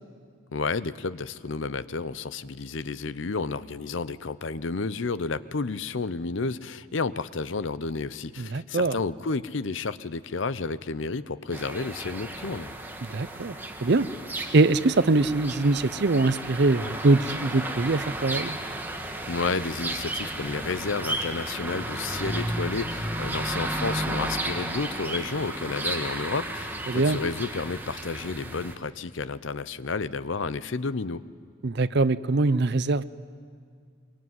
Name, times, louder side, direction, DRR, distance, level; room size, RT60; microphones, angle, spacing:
voice 1, 0.5-12.7 19.3-31.2, left 4 dB, 65° left, 16 dB, 0.7 m, -31 dB
voice 2, 8.4-9.0 13.0-14.1 14.5-18.6 26.9-27.2 31.6-33.0, right 3 dB, 55° right, 16 dB, 0.6 m, -23 dB
sound 1, 11.5-28.8, right 1 dB, 10° right, 1.5 m, -33 dB
23.5 x 22.5 x 9.4 m, 2.1 s
head